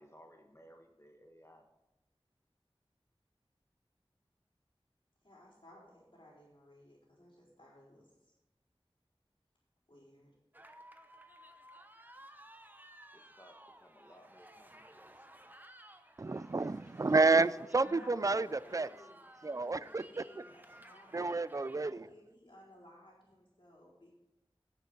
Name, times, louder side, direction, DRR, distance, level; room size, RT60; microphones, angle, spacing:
voice 1, 0.0-1.6 13.1-15.3, equal, 25° left, 1.5 m, -59 dB
voice 2, 5.2-8.3 9.9-10.3 17.8-21.3 21.7-24.2, left 1 dB, 65° left, 4.4 m, -57 dB
sound 1, 10.5-21.9, right 1 dB, 20° right, 0.9 m, -56 dB
voice 3, 16.2-18.9 19.4-20.0 21.1-22.1, right 3 dB, 35° right, 0.3 m, -30 dB
17.0 x 7.1 x 3.8 m
wide cardioid pair, 50°, 10 cm